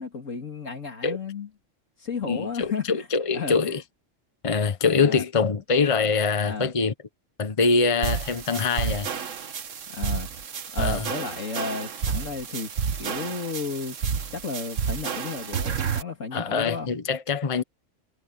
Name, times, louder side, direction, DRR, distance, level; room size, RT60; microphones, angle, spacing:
voice 1, 0.0-1.5 2.0-3.7 5.0-5.2 6.4-6.7 9.9-10.3 10.7-12.7 13.0-14.0 14.3-16.9, left 5 dB, 80° left, 3.0 m, -33 dB
voice 2, 2.3-3.8 4.4-6.9 7.4-9.1 10.8-11.1 16.3-17.6, left 4 dB, 30° left, 1.1 m, -24 dB
sound 1, 8.0-16.0, right 6 dB, 75° right, 1.6 m, -30 dB
omnidirectional pair, 1.3 m